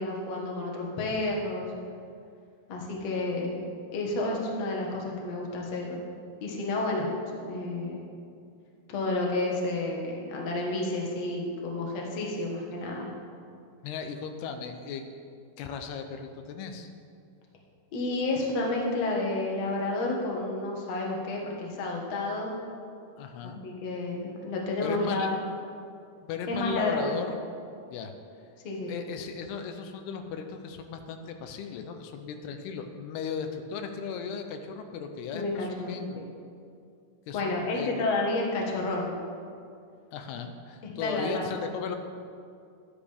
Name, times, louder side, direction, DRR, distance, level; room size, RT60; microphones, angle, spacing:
voice 1, 0.0-1.7 2.7-3.6 3.9-6.0 6.4-7.1 7.4-8.0 8.9-13.1 17.9-22.5 23.4-25.4 26.5-27.2 28.6-28.9 35.3-36.2 37.3-39.2 40.8-41.6, left 2 dB, 55° left, -1 dB, 2.1 m, -30 dB
voice 2, 13.8-15.1 15.6-16.9 23.2-23.6 24.8-25.3 26.2-27.4 27.9-28.1 28.9-36.2 37.3-38.1 40.1-42.0, left 6 dB, 85° left, 6 dB, 2.7 m, -36 dB
12.5 x 10.0 x 3.5 m, 2.4 s
omnidirectional pair, 4.5 m